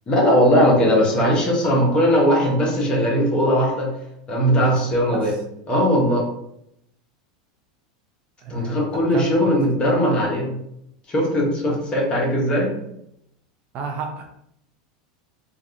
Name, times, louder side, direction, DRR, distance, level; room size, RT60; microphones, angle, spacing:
voice 1, 0.1-3.9 4.3-5.4 5.7-6.3 8.5-10.5 11.1-12.7, equal, 30° left, -3 dB, 1.1 m, -19 dB
voice 2, 8.4-8.8 9.1-9.6 11.7-11.8 13.7-14.3, right 5 dB, 45° right, 4 dB, 0.6 m, -31 dB
3.1 x 2.5 x 2.7 m, 0.76 s
hypercardioid pair, 105°, 4 cm